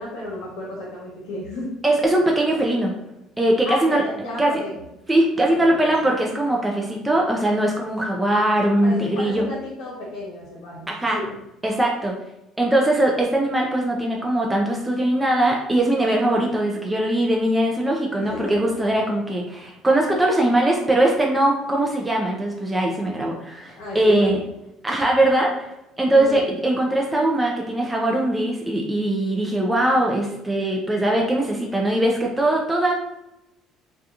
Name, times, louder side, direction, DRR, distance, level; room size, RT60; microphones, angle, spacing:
voice 1, 0.0-1.8 3.6-4.8 5.3-5.9 8.8-11.4 18.2-18.7 23.7-24.3 26.1-26.5, left 2 dB, 80° left, -5 dB, 0.9 m, -33 dB
voice 2, 1.8-2.9 3.4-4.0 4.4-4.5 5.1-9.5 10.9-11.2 11.6-12.2 12.6-24.4 24.8-32.9, right 1 dB, 10° right, -1 dB, 0.4 m, -21 dB
2.7 x 2.3 x 2.4 m, 0.90 s
cardioid pair, 125°, 0 cm